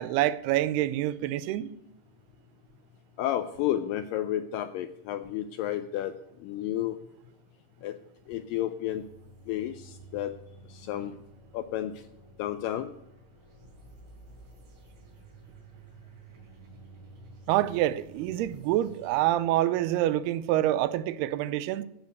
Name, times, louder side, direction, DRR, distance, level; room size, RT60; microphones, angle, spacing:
voice 1, 0.0-1.7 17.5-21.8, right 14 dB, 90° right, 2.6 m, -26 dB
voice 2, 3.2-6.1 6.4-7.0 7.8-8.0 8.3-9.0 9.5-10.3 10.7-11.1 11.5-12.0 12.4-12.9, left 12 dB, 90° left, 1.9 m, -31 dB
sound 1, 8.9-19.3, right 4 dB, 65° right, 6.0 m, -52 dB
13.5 x 5.2 x 8.1 m
omnidirectional pair, 4.5 m